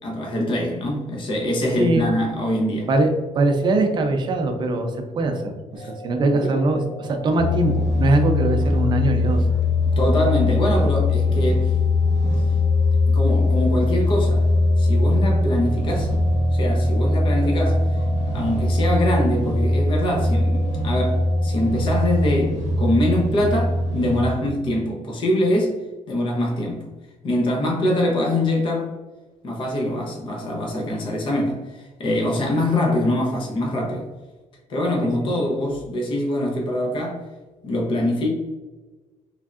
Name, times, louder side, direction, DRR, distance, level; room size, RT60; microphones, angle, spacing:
voice 1, 0.0-2.9 5.8-5.9 6.4-6.5 9.9-11.7 13.1-14.4 14.8-16.1 16.5-18.0 18.3-25.8 26.1-26.9 27.2-28.9 29.4-34.1 34.7-37.2 37.6-38.3, left 1 dB, 40° left, -1 dB, 0.7 m, -23 dB
voice 2, 1.8-2.1 2.9-9.5 10.4-10.7 17.4-17.6 35.0-35.3, right 2 dB, 35° right, 4 dB, 0.5 m, -22 dB
sound 1, 5.7-22.5, left 3 dB, 85° left, 0.8 m, -40 dB
sound 2, 7.4-24.3, left 2 dB, 70° right, 0.8 m, -21 dB
3.5 x 3.1 x 2.4 m, 1.2 s
cardioid pair, 155°, 13 cm